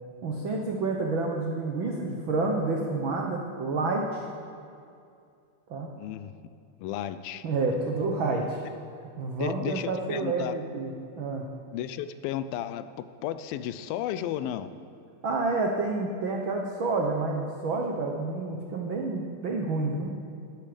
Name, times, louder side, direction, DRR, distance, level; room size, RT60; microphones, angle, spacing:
voice 1, 0.2-4.3 5.7-5.9 7.4-8.6 9.2-10.9 11.2-11.5 15.2-20.1, right 3 dB, 85° right, 1 dB, 1.1 m, -29 dB
voice 2, 6.0-6.3 6.8-7.4 9.4-10.5 11.7-14.7, left 11 dB, 85° left, 12 dB, 2.4 m, -33 dB
19.0 x 11.5 x 5.2 m, 2.4 s
omnidirectional pair, 4.1 m